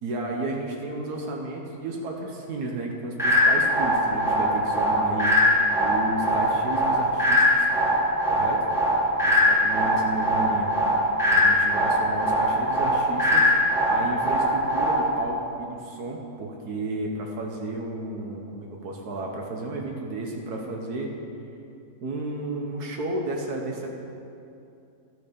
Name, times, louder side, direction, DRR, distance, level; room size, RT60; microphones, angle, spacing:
voice 1, 0.0-5.3 5.8-7.7 8.3-8.7 9.2-10.7 11.3-13.5 13.9-21.1 22.0-23.9, right 2 dB, 85° right, 0 dB, 1.6 m, -32 dB
sound 1, 3.2-15.2, equal, ahead, 1.6 m, -22 dB
13.0 x 6.2 x 5.2 m, 2.6 s
omnidirectional pair, 1.6 m